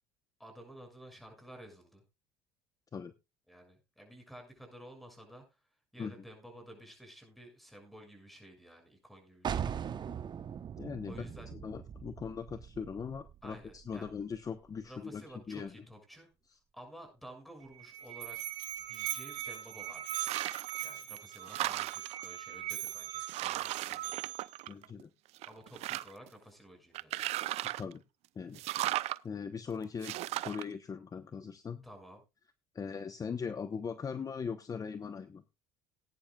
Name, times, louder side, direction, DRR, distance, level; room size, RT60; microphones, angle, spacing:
voice 1, 0.4-2.0 3.5-5.4 5.9-9.8 11.0-11.5 13.4-14.1 14.8-16.3 16.7-18.4 18.9-20.3 20.8-24.0 25.4-27.1 31.8-32.2, right 1 dB, ahead, 4 dB, 6.5 m, -52 dB
sound 1, 9.4-15.0, right 8 dB, 40° right, 1.0 m, -41 dB
voice 2, 10.8-15.8 23.9-24.0 24.7-25.1 27.8-28.0 28.3-28.6 29.2-31.8 32.7-35.4, left 6 dB, 30° left, 11 dB, 1.0 m, -40 dB
Musical instrument, 17.6-24.6, right 13 dB, 85° right, 2.6 m, -40 dB
sound 2, 20.1-20.8 21.2-22.2 22.9-23.0 23.3-25.0 25.4-26.3 26.9-27.9 28.5-29.2 30.0-30.6, right 16 dB, 65° right, 0.5 m, -36 dB
18.5 x 10.0 x 2.4 m, 0.26 s
supercardioid pair, 90°, 12 cm